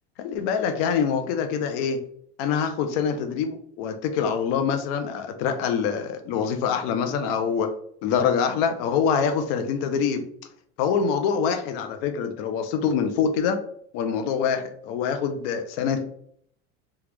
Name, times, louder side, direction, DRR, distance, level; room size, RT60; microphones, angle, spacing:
voice 1, 0.2-2.0 2.4-7.7 8.0-10.2 10.8-13.6 13.9-16.0, left 6 dB, 70° left, 0.6 m, -25 dB
3.2 x 2.4 x 3.3 m
cardioid pair, 155°, 32 cm